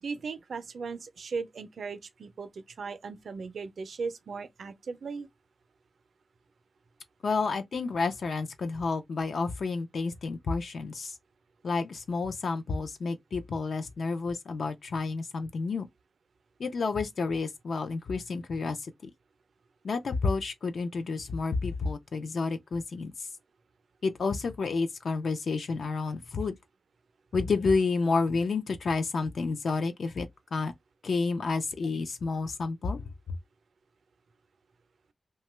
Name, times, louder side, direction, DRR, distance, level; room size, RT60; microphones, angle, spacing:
voice 1, 0.0-5.3, right 4 dB, 65° right, 0.5 m, -37 dB
voice 2, 7.2-11.2 11.6-15.9 16.6-19.1 19.8-23.3 24.0-26.6 27.3-30.7 31.0-33.0, left 4 dB, 60° left, 0.4 m, -30 dB
2.9 x 2.2 x 3.0 m
wide cardioid pair, 160°, 0 cm